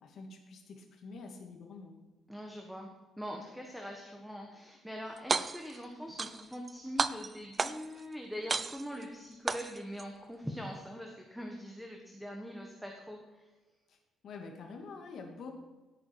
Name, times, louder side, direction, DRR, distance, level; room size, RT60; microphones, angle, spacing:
voice 1, 0.0-2.0 13.9-14.0 14.2-15.5, left 4 dB, 55° left, 4 dB, 2.4 m, -47 dB
voice 2, 2.3-2.9 3.2-13.5, equal, ahead, 1 dB, 1.4 m, -43 dB
sound 1, 5.2-5.8 6.2-6.7 7.0-8.0 8.5-9.0 9.5-10.0, right 4 dB, 25° right, 0.5 m, -32 dB
17.0 x 9.0 x 4.8 m, 1.2 s
cardioid pair, 155°, 0 cm